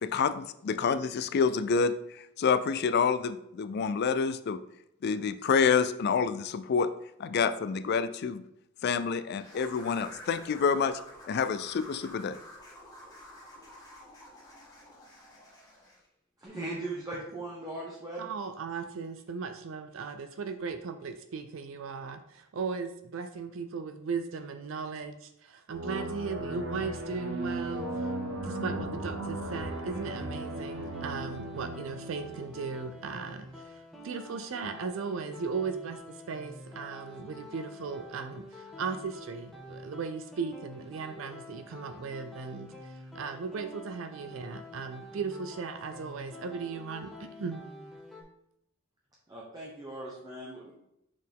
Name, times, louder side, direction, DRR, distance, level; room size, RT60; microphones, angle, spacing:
voice 1, 0.0-4.6 5.0-6.9 7.2-8.4 8.8-11.0 11.3-12.4, left 5 dB, 50° left, 12 dB, 0.3 m, -28 dB
sound 1, 9.4-16.0, left 1 dB, 20° left, 1.7 m, -49 dB
voice 2, 16.4-18.3 49.3-50.7, right 2 dB, 20° right, -5 dB, 1.0 m, -39 dB
voice 3, 18.2-28.1 28.4-47.6, right 5 dB, 70° right, 8 dB, 0.4 m, -37 dB
sound 2, 25.7-33.1, right 1 dB, 90° right, 0.9 m, -37 dB
sound 3, 29.5-48.2, left 1 dB, ahead, 1.2 m, -48 dB
6.2 x 4.3 x 3.6 m, 0.82 s
head